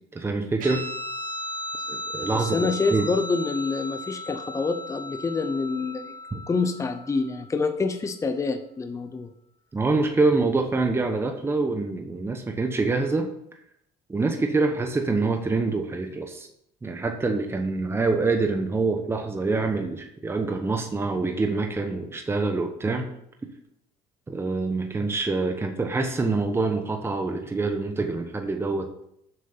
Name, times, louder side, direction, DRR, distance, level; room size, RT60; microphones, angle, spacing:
voice 1, 0.1-0.8 1.9-3.1 9.7-13.3 14.1-16.5 16.8-23.1 24.3-29.0, right 3 dB, 15° right, 5 dB, 1.0 m, -25 dB
Guitar, 0.6-7.5, equal, 70° right, 2.6 m, -36 dB
voice 2, 2.3-6.1 6.5-9.3, left 4 dB, 20° left, 7 dB, 0.7 m, -27 dB
7.8 x 6.2 x 5.6 m, 0.75 s
cardioid pair, 110°, 14 cm